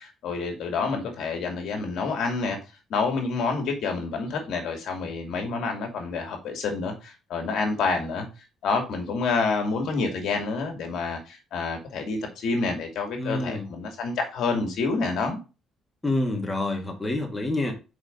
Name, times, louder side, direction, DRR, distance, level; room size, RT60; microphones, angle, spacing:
voice 1, 0.0-2.6 2.9-8.3 8.6-15.4, left 4 dB, 75° left, 2.3 m, -28 dB
voice 2, 13.2-13.7 16.0-17.7, left 2 dB, 15° left, 2.1 m, -27 dB
5.1 x 4.9 x 5.2 m
cardioid pair, 100°, 0 cm